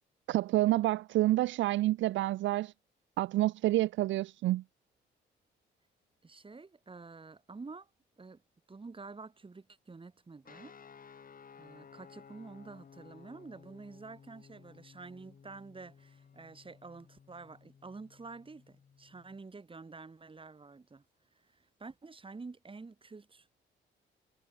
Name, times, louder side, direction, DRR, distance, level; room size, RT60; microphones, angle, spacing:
voice 1, 0.3-2.7 3.2-4.6, right 16 dB, 70° right, 0.4 m, -28 dB
voice 2, 6.2-7.9 8.2-8.4 8.7-10.7 11.6-21.0 21.4-23.5, right 4 dB, 25° right, 5.2 m, -49 dB
sound 1, 10.4-19.4, left 6 dB, 45° left, 5.8 m, -57 dB
cardioid pair, 90°, 20 cm